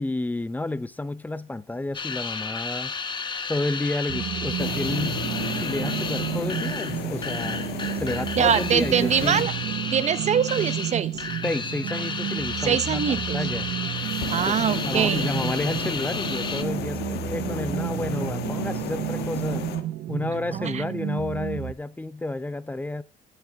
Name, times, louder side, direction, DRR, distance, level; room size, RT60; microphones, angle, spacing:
voice 1, 0.0-2.9 3.5-5.2 5.6-7.7 8.0-9.5 11.4-13.0 13.3-13.7 14.5-19.7 20.1-23.0, left 2 dB, 10° left, 0.7 m, -30 dB
sound 1, 1.9-16.6, left 5 dB, 25° left, 1.1 m, -33 dB
sound 2, 4.1-21.7, right 13 dB, 65° right, 0.7 m, -31 dB
sound 3, 4.5-9.5 14.0-19.8, left 10 dB, 75° left, 1.4 m, -34 dB
voice 2, 8.3-9.5 9.9-11.2 12.6-13.4 14.3-15.3 20.5-20.8, right 8 dB, 40° right, 1.0 m, -23 dB
16.0 x 6.7 x 3.6 m
cardioid pair, 110°, 17 cm